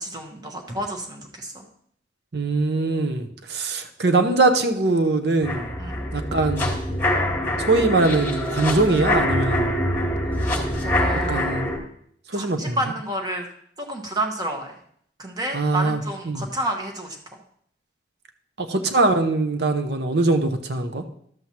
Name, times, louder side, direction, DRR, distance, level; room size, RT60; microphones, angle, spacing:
voice 1, 0.0-1.6 5.8-6.1 10.8-11.5 12.3-13.5 13.8-14.7 15.2-17.2, right 1 dB, 20° right, 2 dB, 1.0 m, -30 dB
voice 2, 2.3-5.8 6.1-6.7 7.6-9.7 11.1-11.7 12.3-12.8 15.5-16.0 16.2-16.4 18.6-21.0, right 2 dB, 65° right, 6 dB, 0.8 m, -22 dB
sound 1, 5.4-11.8, left 1 dB, 15° left, 1.4 m, -24 dB
12.0 x 7.7 x 2.9 m, 0.66 s
head